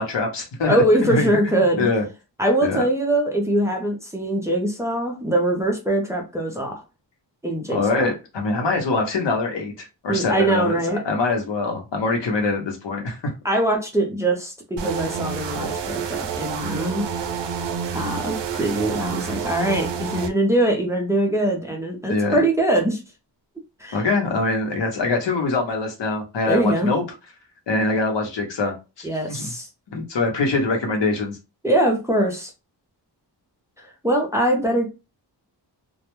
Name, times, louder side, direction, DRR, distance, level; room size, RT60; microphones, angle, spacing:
voice 1, 0.0-2.0 2.6-2.8 7.7-13.2 22.1-22.4 23.9-27.1 27.7-29.5 29.9-31.4, left 3 dB, 85° left, 0.8 m, -24 dB
voice 2, 0.7-1.9 2.4-6.8 7.4-8.1 10.1-11.0 13.4-17.0 17.9-23.0 23.8-24.0 26.5-26.9 29.0-29.7 31.6-32.5 33.8-34.9, right 1 dB, 5° right, 0.4 m, -22 dB
sound 1, 14.8-20.3, right 6 dB, 85° right, 0.5 m, -28 dB
2.2 x 2.1 x 3.0 m
wide cardioid pair, 160°, 42 cm